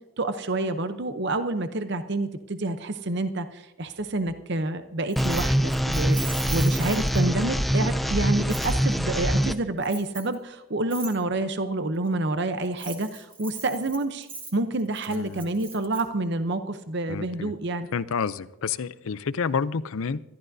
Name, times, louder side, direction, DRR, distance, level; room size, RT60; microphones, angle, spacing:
voice 1, 0.2-17.9, right 2 dB, 50° right, 0.7 m, -28 dB
Keys jangling, 5.1-7.4 8.5-8.7 9.8-10.3 10.9-11.1 12.6-16.0, right 4 dB, 25° right, 1.6 m, -39 dB
sound 1, 5.2-9.5, equal, ahead, 0.4 m, -24 dB
voice 2, 15.1-15.4 17.1-17.5 17.9-20.2, left 6 dB, 70° left, 0.5 m, -29 dB
25.0 x 12.5 x 2.7 m
head